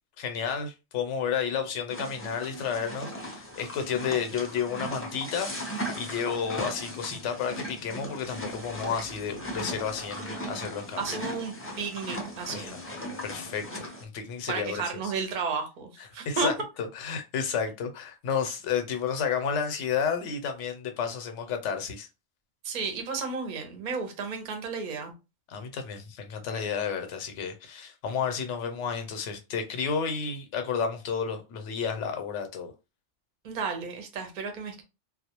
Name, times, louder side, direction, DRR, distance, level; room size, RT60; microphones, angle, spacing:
voice 1, 0.2-11.0 12.5-12.8 13.2-15.1 16.3-22.1 25.5-32.7, left 6 dB, 85° left, 0.9 m, -31 dB
sound 1, 1.9-14.0, equal, 20° left, 0.3 m, -38 dB
voice 2, 10.3-10.7 11.0-12.8 14.5-16.5 22.6-25.1 33.4-34.8, right 5 dB, 50° right, 0.6 m, -33 dB
2.3 x 2.0 x 2.8 m
omnidirectional pair, 1.2 m